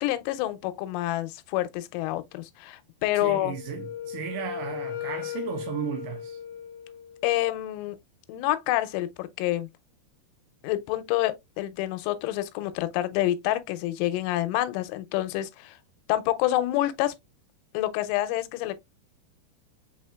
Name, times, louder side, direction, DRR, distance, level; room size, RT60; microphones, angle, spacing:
voice 1, 0.0-3.6 7.2-8.0 8.3-9.7 10.6-15.8 16.1-17.1 17.7-18.8, left 15 dB, 85° left, 3.0 m, -27 dB
voice 2, 3.2-6.4, right 9 dB, 85° right, 2.5 m, -35 dB
Wind instrument woodwind instrument, 3.4-7.3, left 10 dB, 25° left, 1.5 m, -37 dB
6.8 x 2.8 x 2.2 m
omnidirectional pair, 5.4 m